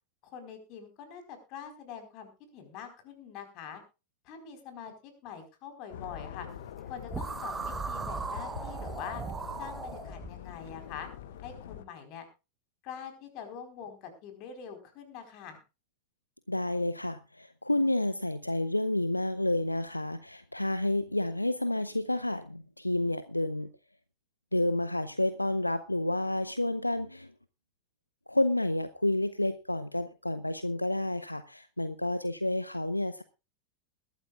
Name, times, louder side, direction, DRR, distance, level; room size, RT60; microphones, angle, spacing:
voice 1, 0.2-3.8 4.2-6.5 6.8-9.2 9.6-11.1 11.4-12.3 12.8-15.6, left 7 dB, 40° left, 6 dB, 4.4 m, -44 dB
sound 1, 5.9-11.8, left 9 dB, 55° left, 1.1 m, -44 dB
sound 2, 7.1-10.3, right 4 dB, 15° right, 1.0 m, -37 dB
voice 2, 16.5-23.7 24.5-27.3 28.3-33.2, left 1 dB, 85° left, 13 dB, 0.6 m, -30 dB
21.0 x 12.5 x 2.5 m, 0.29 s
figure-of-eight pair, 90°, 0 cm